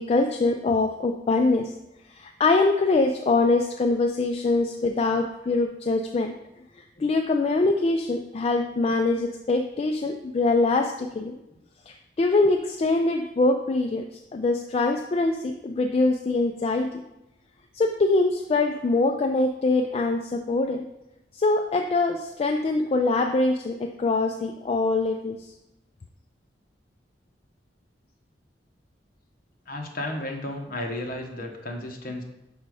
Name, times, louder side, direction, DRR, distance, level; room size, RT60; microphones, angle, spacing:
voice 1, 0.0-1.7 2.1-6.3 7.0-11.4 11.9-14.1 14.3-17.0 17.7-20.9 21.3-25.5, left 3 dB, 35° left, 4 dB, 0.3 m, -23 dB
voice 2, 29.7-32.2, left 1 dB, 55° left, 2 dB, 1.0 m, -33 dB
5.4 x 5.2 x 4.7 m, 0.91 s
head